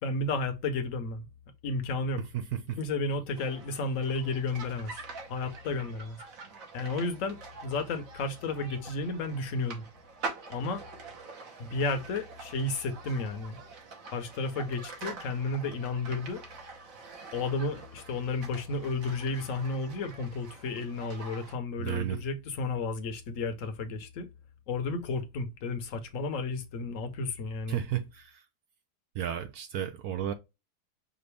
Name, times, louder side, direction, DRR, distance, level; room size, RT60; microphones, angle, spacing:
voice 1, 0.0-1.3 1.6-2.2 2.8-5.0 5.3-6.2 6.7-9.8 10.5-10.8 11.6-13.6 14.1-16.4 17.3-24.3 24.7-27.8, left 3 dB, 55° left, 1.1 m, -32 dB
voice 2, 2.3-2.8 21.8-22.2 27.7-28.4 29.1-30.3, right 10 dB, 70° right, 1.0 m, -33 dB
sound 1, 3.3-21.5, right 4 dB, 55° right, 1.5 m, -45 dB
5.1 x 2.6 x 3.2 m
omnidirectional pair, 1.8 m